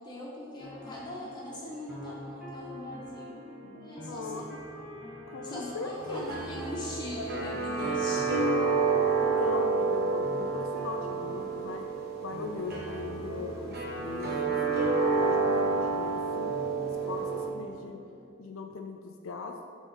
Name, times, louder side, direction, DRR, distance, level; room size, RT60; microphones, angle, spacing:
voice 1, 0.0-4.5 5.4-8.3, left 1 dB, 20° left, -6 dB, 1.8 m, -41 dB
sound 1, 0.6-18.3, left 1 dB, 5° right, 1.8 m, -45 dB
voice 2, 3.6-4.6 5.3-6.7 9.3-11.9 12.2-14.6 15.1-16.6 16.8-18.0 18.4-19.7, left 4 dB, 90° left, 4 dB, 0.5 m, -39 dB
sound 2, 5.9-17.5, right 4 dB, 50° right, 1.2 m, -29 dB
7.3 x 4.3 x 5.4 m, 2.4 s
head